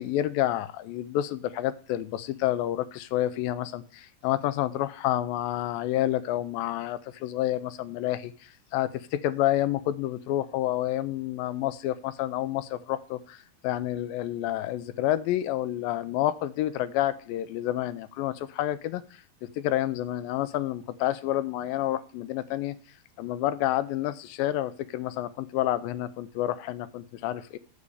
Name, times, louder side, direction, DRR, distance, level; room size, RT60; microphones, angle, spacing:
voice 1, 0.0-13.4 13.6-19.0 19.6-22.8 23.2-27.6, left 13 dB, 80° left, 15 dB, 2.1 m, -29 dB
9.8 x 5.2 x 6.9 m, 0.41 s
omnidirectional pair, 4.4 m